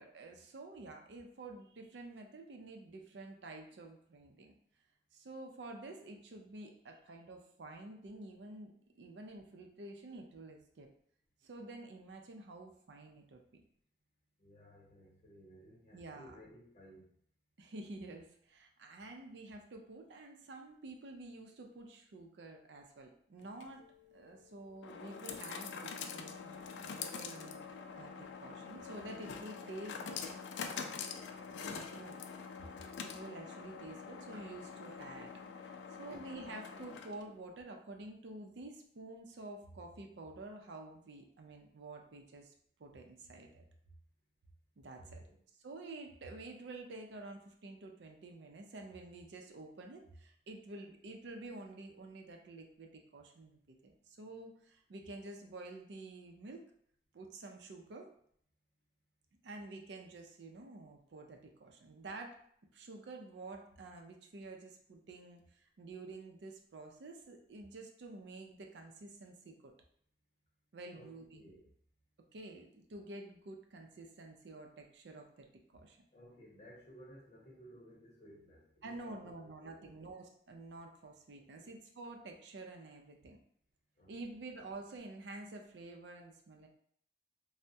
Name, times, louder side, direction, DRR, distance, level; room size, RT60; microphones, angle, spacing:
voice 1, 0.0-4.5 5.1-10.9 11.4-13.4 15.9-16.4 17.6-23.8 24.1-30.3 31.7-32.2 33.0-35.3 35.6-42.5 42.8-43.6 44.8-45.2 45.6-56.7 57.1-58.1 59.4-62.4 62.7-69.7 70.7-71.5 72.3-76.0 78.8-83.4 84.1-86.7, right 2 dB, 85° right, 3 dB, 0.5 m, -49 dB
voice 2, 14.4-17.2 30.8-31.2 36.1-36.2 44.9-45.4 70.9-71.7 76.1-79.5 79.8-80.1 81.4-81.7 84.0-84.1, equal, 40° left, -3 dB, 0.8 m, -58 dB
sound 1, 23.4-37.4, left 6 dB, 90° left, 0.3 m, -45 dB
3.3 x 2.1 x 2.7 m, 0.66 s
head